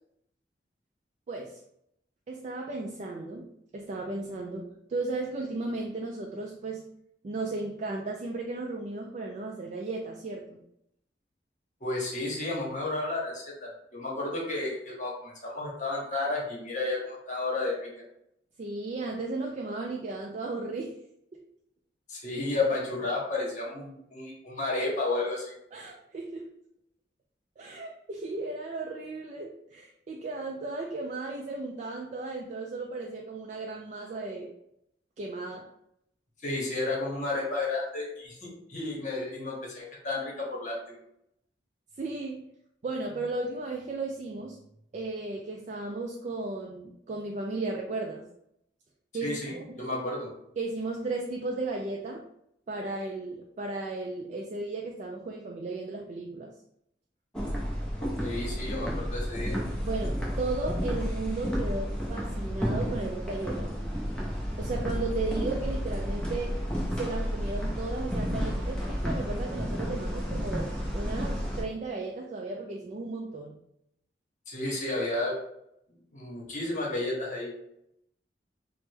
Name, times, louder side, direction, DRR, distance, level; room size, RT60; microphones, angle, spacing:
voice 1, 1.3-1.6 2.3-3.4 3.7-6.8 7.2-10.6 18.6-21.0 21.3-21.4 25.7-26.5 27.6-34.5 35.2-35.6 42.0-42.5 42.8-44.6 44.9-48.2 49.1-49.8 50.6-52.2 52.7-56.5 59.8-64.1 64.6-66.5 67.0-73.5, right 3 dB, 40° right, 0 dB, 0.3 m, -35 dB
voice 2, 11.8-17.9 22.1-25.5 36.4-41.0 49.2-50.3 58.0-59.6 74.5-75.4 75.9-77.5, left 2 dB, 45° left, -3 dB, 0.9 m, -32 dB
sound 1, 57.3-71.6, equal, 5° left, 0.5 m, -31 dB
3.2 x 2.0 x 3.2 m, 0.77 s
head